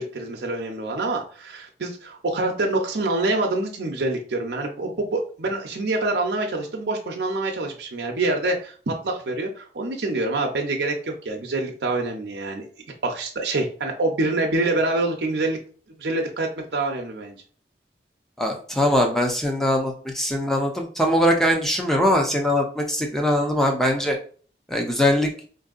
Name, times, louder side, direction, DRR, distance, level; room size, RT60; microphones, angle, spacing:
voice 1, 0.0-12.7 13.0-15.6 16.0-17.4, right 2 dB, 75° right, 1 dB, 0.6 m, -26 dB
voice 2, 18.4-24.2 24.7-25.3, left 1 dB, ahead, 1 dB, 0.5 m, -21 dB
4.4 x 2.6 x 2.4 m, 0.43 s
head